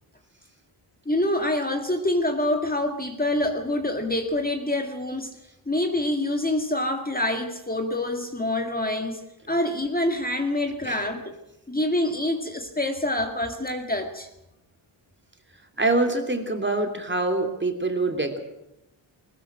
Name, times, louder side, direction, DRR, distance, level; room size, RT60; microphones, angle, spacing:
voice 1, 1.1-5.4 5.7-11.4 11.7-14.3, left 1 dB, 15° left, 4 dB, 2.1 m, -26 dB
voice 2, 15.8-18.4, right 2 dB, 20° right, 5 dB, 3.1 m, -25 dB
21.0 x 20.5 x 6.2 m, 0.90 s
wide cardioid pair, 150°, 50 cm